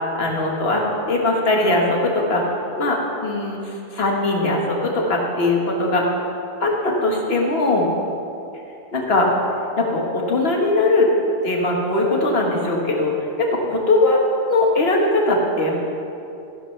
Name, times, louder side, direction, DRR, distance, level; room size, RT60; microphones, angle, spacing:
voice 1, 0.2-0.8 1.1-2.4 2.8-6.0 6.6-7.9 8.9-9.3 9.8-11.1 11.4-14.2 14.5-15.8, left 2 dB, 55° left, -1 dB, 1.7 m, -20 dB
13.5 x 11.5 x 3.3 m, 2.7 s
omnidirectional pair, 1.2 m